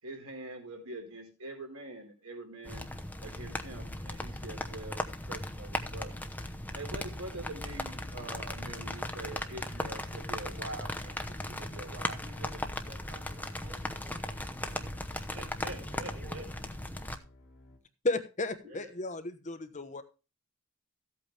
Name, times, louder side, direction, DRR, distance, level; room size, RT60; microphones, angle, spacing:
voice 1, 0.0-2.9 3.2-6.3 6.7-12.6 15.3-16.4, right 2 dB, 80° right, 2 dB, 4.1 m, -44 dB
sound 1, 2.6-17.2, left 1 dB, 10° left, 0.8 m, -38 dB
sound 2, 7.7-17.8, left 1 dB, 55° left, 3.0 m, -54 dB
voice 2, 12.8-15.2 15.6-16.6 18.6-18.9, equal, 40° right, 1 dB, 5.0 m, -54 dB
voice 3, 18.0-20.0, left 2 dB, 35° left, 9 dB, 1.0 m, -33 dB
14.5 x 8.5 x 3.4 m, 0.31 s
head